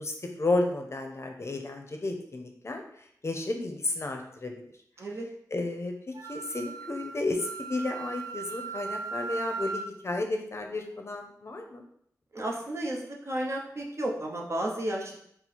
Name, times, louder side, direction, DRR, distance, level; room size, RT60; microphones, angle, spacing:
voice 1, 0.0-4.6 5.5-11.8, left 2 dB, 45° left, 4 dB, 0.6 m, -32 dB
Wind instrument woodwind instrument, 6.1-9.9, right 4 dB, 70° right, 0.4 m, -37 dB
voice 2, 12.3-15.2, right 1 dB, 45° right, -1 dB, 0.8 m, -32 dB
4.4 x 2.1 x 4.2 m, 0.70 s
wide cardioid pair, 95°, 7 cm